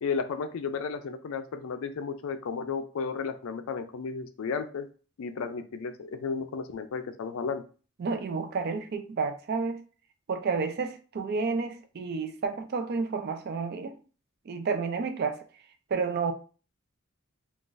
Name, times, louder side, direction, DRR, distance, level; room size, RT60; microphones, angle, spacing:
voice 1, 0.0-4.9 5.2-7.6, left 5 dB, 70° left, 0.4 m, -33 dB
voice 2, 8.0-9.8 10.3-14.0 14.5-15.4 15.9-16.3, right 4 dB, 45° right, 0.3 m, -30 dB
2.5 x 2.4 x 3.8 m
head